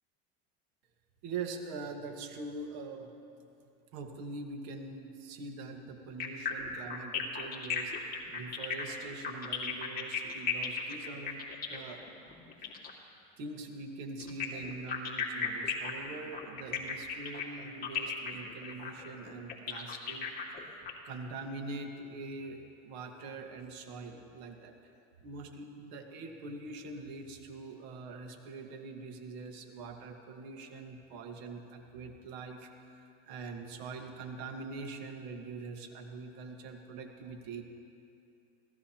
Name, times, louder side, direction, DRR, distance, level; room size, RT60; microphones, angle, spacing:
voice 1, 1.2-3.1 3.9-11.4 11.7-12.0 12.6-12.7 13.4-24.7 25.2-37.6, right 3 dB, 65° right, 4 dB, 1.8 m, -43 dB
sound 1, 6.2-13.0 14.2-20.9, left 6 dB, 25° left, 2.2 m, -36 dB
24.5 x 16.5 x 3.0 m, 2.6 s
supercardioid pair, 120°, 35 cm